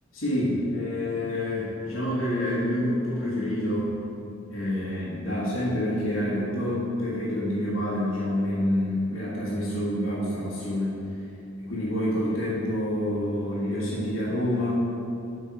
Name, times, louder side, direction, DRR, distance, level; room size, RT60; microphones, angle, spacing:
voice 1, 0.1-3.9 4.5-11.0 11.6-14.9, left 1 dB, 70° left, -10 dB, 1.7 m, -27 dB
8.7 x 5.4 x 4.6 m, 2.6 s
head